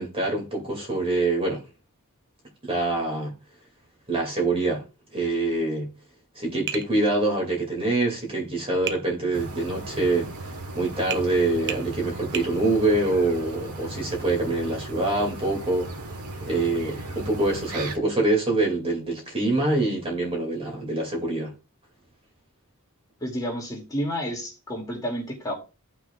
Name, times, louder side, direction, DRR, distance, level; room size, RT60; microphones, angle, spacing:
voice 1, 0.0-1.6 2.6-3.3 4.1-4.8 5.1-5.9 6.4-10.3 10.7-15.9 16.4-21.5, right 2 dB, 25° right, 2.4 m, -25 dB
Tap, 6.7-6.9 8.9-9.0 11.1-11.3 11.7-11.9 12.3-12.5, right 8 dB, 50° right, 0.7 m, -31 dB
sound 1, 9.3-18.0, right 2 dB, 85° right, 1.3 m, -36 dB
voice 2, 23.2-25.5, equal, 15° left, 2.5 m, -30 dB
15.0 x 6.0 x 2.4 m
head